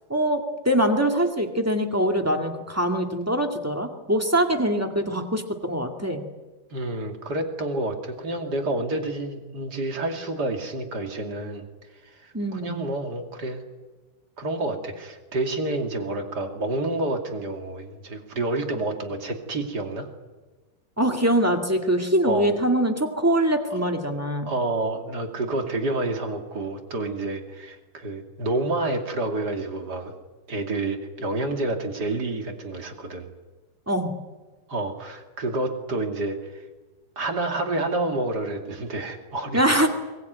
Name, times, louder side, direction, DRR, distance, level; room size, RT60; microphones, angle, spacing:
voice 1, 0.1-6.2 12.3-12.8 21.0-24.5 33.9-34.1 39.5-39.9, right 1 dB, 10° right, 4 dB, 1.0 m, -23 dB
voice 2, 6.7-11.7 12.0-13.6 14.4-20.1 22.2-22.5 23.7-23.8 24.5-30.2 30.5-33.3 34.7-36.6 37.2-39.9, right 2 dB, 30° right, 4 dB, 2.7 m, -29 dB
24.0 x 20.5 x 9.4 m, 1.3 s
omnidirectional pair, 4.0 m